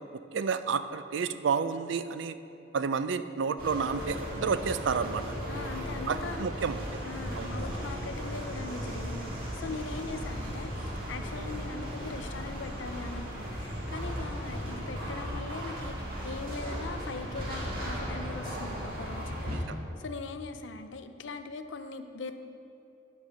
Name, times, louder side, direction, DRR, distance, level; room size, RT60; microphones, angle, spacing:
voice 1, 0.3-2.4 2.7-5.2 6.1-7.0 7.3-7.5 19.5-19.8, right 5 dB, 70° right, 12 dB, 0.4 m, -30 dB
sound 1, 3.6-19.6, equal, 50° right, 1.8 m, -37 dB
voice 2, 5.5-6.6 7.0-19.6 20.0-22.3, left 4 dB, 70° left, 9 dB, 0.5 m, -41 dB
sound 2, 7.2-13.0 14.2-20.4, left 1 dB, 15° left, 0.5 m, -46 dB
9.3 x 5.6 x 6.2 m, 2.8 s
head